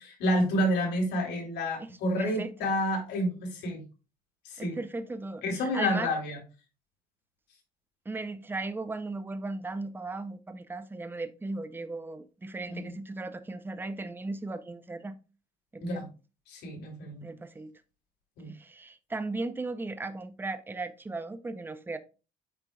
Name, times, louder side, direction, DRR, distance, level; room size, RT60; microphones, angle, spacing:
voice 1, 0.0-3.8 4.4-4.8 5.4-6.4 12.7-12.9 15.8-16.1 16.5-17.3 18.4-18.5, equal, 80° left, 3.0 m, -29 dB
voice 2, 2.2-2.7 4.6-6.1 8.1-15.2 15.7-16.1 17.2-17.7 18.5-22.0, right 3 dB, 10° right, 0.7 m, -37 dB
8.2 x 5.6 x 2.3 m
cardioid pair, 110°, 17 cm